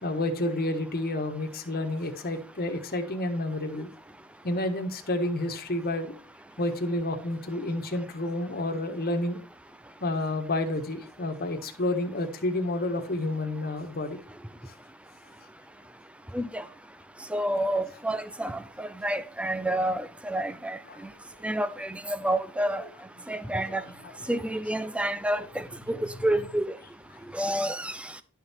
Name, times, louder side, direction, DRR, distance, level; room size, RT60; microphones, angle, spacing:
voice 1, 0.0-3.9 4.4-6.2 6.6-9.4 10.0-14.2 14.7-14.8 20.9-21.2 23.4-24.1, left 1 dB, 45° left, 1.5 m, -30 dB
voice 2, 16.3-16.6 17.3-20.8 21.4-22.8 23.3-23.8 24.3-26.8 27.3-28.0, right 1 dB, 5° right, 0.6 m, -29 dB
11.5 x 5.6 x 4.4 m
head